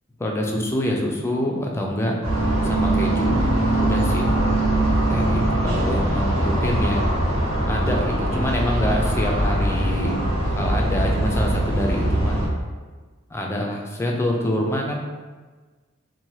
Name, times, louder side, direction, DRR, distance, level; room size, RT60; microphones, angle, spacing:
voice 1, 0.2-2.2 2.6-4.3 5.1-7.0 7.7-10.1 10.5-12.4 13.3-15.0, left 1 dB, 15° left, 0 dB, 0.3 m, -26 dB
sound 1, 2.2-12.5, right 1 dB, 85° right, 0.9 m, -22 dB
sound 2, 3.3-6.9, equal, 50° right, 0.5 m, -36 dB
2.7 x 2.2 x 3.0 m, 1.3 s
head